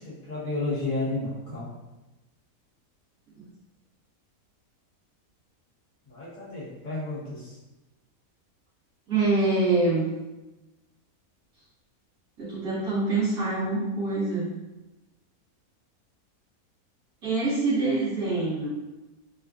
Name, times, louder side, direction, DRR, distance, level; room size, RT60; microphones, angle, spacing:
voice 1, 0.0-1.7 6.1-7.5, left 2 dB, 70° left, -8 dB, 1.7 m, -32 dB
voice 2, 9.1-10.1 12.4-14.5 17.2-18.7, right 3 dB, 75° right, -10 dB, 1.7 m, -25 dB
4.3 x 2.3 x 2.4 m, 1.0 s
omnidirectional pair, 1.6 m